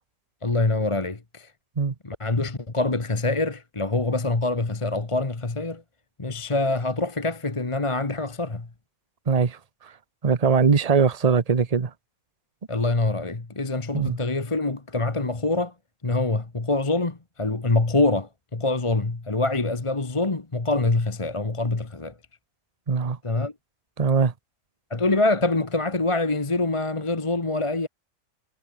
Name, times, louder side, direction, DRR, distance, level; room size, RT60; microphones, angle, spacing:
voice 1, 0.4-1.5 2.0-5.8 6.2-8.7 12.7-15.7 16.0-22.1 23.2-23.5 24.9-27.9, left 2 dB, 20° left, 1.4 m, -25 dB
voice 2, 9.3-9.6 10.2-11.9 13.9-14.2 22.9-23.2 24.0-24.3, right 5 dB, 30° right, 1.0 m, -21 dB
omnidirectional pair, 1.5 m